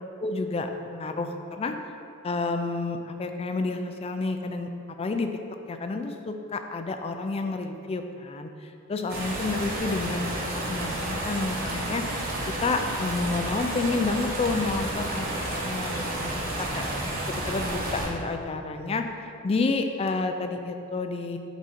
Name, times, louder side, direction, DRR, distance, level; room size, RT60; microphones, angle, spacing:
voice 1, 0.2-1.7 2.2-5.3 5.7-12.0 12.6-19.0 19.4-21.4, left 3 dB, 25° left, 6 dB, 0.3 m, -30 dB
sound 1, 9.1-18.1, right 1 dB, 40° right, 1.0 m, -31 dB
6.1 x 5.0 x 4.2 m, 2.8 s
head